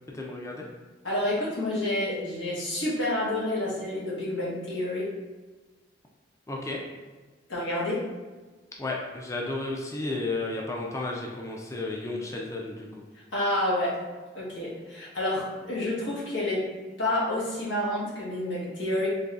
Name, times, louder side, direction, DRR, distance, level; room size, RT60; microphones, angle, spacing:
voice 1, 0.1-0.6 6.5-6.8 8.8-12.9, left 2 dB, 15° left, -1 dB, 0.3 m, -33 dB
voice 2, 1.0-5.1 7.5-8.0 13.3-14.0 14.3-16.7 17.0-19.1, left 1 dB, 90° left, -6 dB, 1.2 m, -29 dB
3.9 x 2.9 x 2.4 m, 1.3 s
head